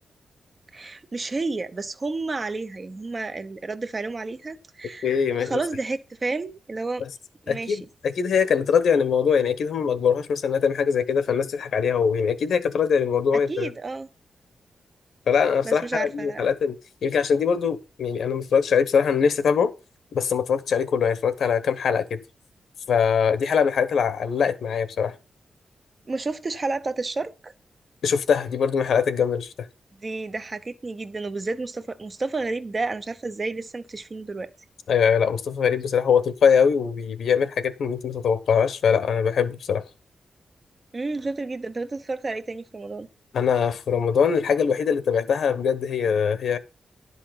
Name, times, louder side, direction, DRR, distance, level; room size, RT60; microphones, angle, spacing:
voice 1, 0.7-5.1 5.4-7.0 7.4-7.8 13.5-14.1 15.6-16.5 26.1-27.5 29.9-34.5 40.9-43.1, right 3 dB, 30° right, 0.9 m, -31 dB
voice 2, 5.0-5.6 7.5-13.7 15.3-16.7 17.0-19.7 20.1-22.2 22.9-25.1 28.0-29.5 34.9-39.8 43.3-46.6, left 6 dB, 85° left, 1.0 m, -22 dB
11.0 x 5.6 x 5.8 m
wide cardioid pair, 155°, 0 cm